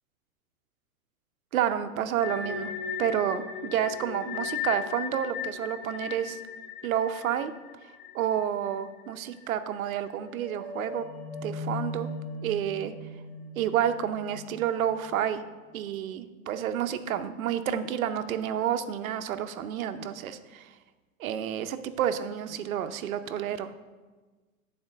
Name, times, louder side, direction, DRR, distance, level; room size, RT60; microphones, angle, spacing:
voice 1, 1.5-2.7 3.0-6.4 6.8-7.5 8.1-11.1 11.4-12.1 12.4-12.9 13.6-15.4 15.7-20.7 21.2-23.7, right 9 dB, 70° right, 10 dB, 0.7 m, -30 dB
sound 1, 2.2-9.1 9.3-9.5 10.0-15.3, left 5 dB, 40° left, 2.4 m, -37 dB
9.5 x 4.4 x 6.3 m, 1.3 s
supercardioid pair, 175°, 43 cm